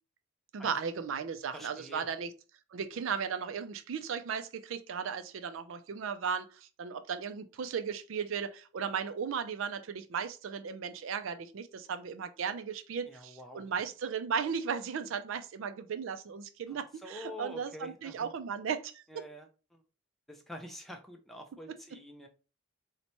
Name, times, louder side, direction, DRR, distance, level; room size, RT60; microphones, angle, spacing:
voice 1, 0.5-2.3 2.7-19.0, right 6 dB, 70° right, 0.4 m, -36 dB
voice 2, 1.5-2.0 13.1-13.7 16.7-18.3 19.1-19.8 20.3-22.3, equal, ahead, 0.4 m, -47 dB
4.0 x 2.1 x 2.9 m
head